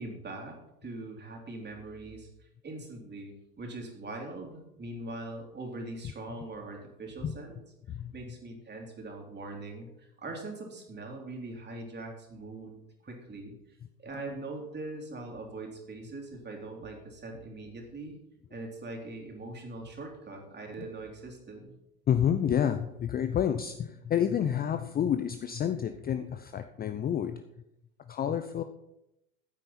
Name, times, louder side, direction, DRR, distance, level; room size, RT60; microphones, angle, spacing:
voice 1, 0.0-7.6 8.1-13.6 14.0-18.2 18.5-21.7, right 2 dB, 25° right, 1 dB, 3.5 m, -42 dB
voice 2, 22.1-27.4 28.1-28.6, left 9 dB, 20° left, 9 dB, 0.6 m, -29 dB
14.5 x 8.9 x 4.3 m, 0.87 s
figure-of-eight pair, 80°, 44 cm